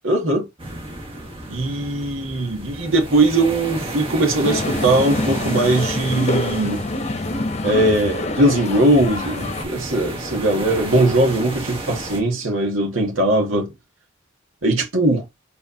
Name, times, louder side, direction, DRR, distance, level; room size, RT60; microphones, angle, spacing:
voice 1, 0.0-0.5 1.5-6.9 7.6-13.7 14.6-15.2, right 1 dB, 80° right, 2.1 m, -20 dB
sound 1, 0.6-12.2, right 1 dB, 25° right, 1.6 m, -33 dB
sound 2, 4.4-9.6, left 2 dB, 35° left, 0.9 m, -26 dB
4.9 x 3.9 x 2.7 m
head